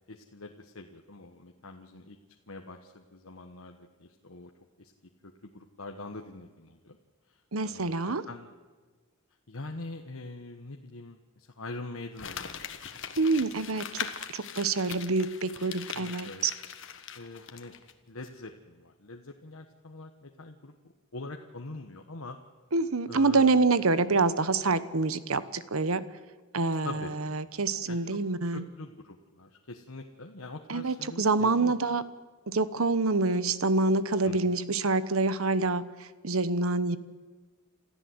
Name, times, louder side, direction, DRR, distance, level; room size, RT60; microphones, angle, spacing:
voice 1, 0.1-2.2 2.5-4.5 4.8-4.9 5.2-7.0 7.3-8.5 9.5-13.0 15.0-15.1 15.9-16.4 17.1-17.7 18.1-20.7 21.1-22.4 23.1-23.6 26.7-27.1 27.9-28.2 28.5-31.7 34.2-34.6, left 2 dB, 75° left, 3 dB, 1.3 m, -44 dB
voice 2, 7.5-8.2 13.2-16.5 22.7-26.0 26.5-28.6 30.7-32.0 32.5-37.0, right 3 dB, 75° right, 14 dB, 1.1 m, -26 dB
Crumpling crinkling, 12.2-17.9 18.2-18.3, left 8 dB, 60° left, 1.5 m, -41 dB
27.5 x 14.0 x 8.0 m, 1.4 s
head